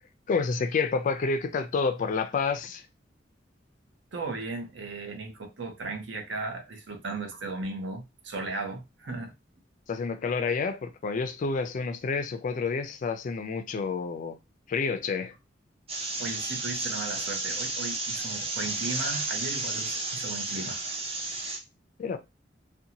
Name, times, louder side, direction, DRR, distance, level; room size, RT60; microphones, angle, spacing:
voice 1, 0.3-2.8 9.9-14.4 14.7-15.3 22.0-22.2, left 4 dB, 45° left, 0.3 m, -29 dB
voice 2, 4.1-9.3 16.2-20.8, right 3 dB, 70° right, 0.7 m, -36 dB
sound 1, 15.9-21.6, right 2 dB, 30° right, 0.6 m, -32 dB
2.6 x 2.2 x 2.8 m
head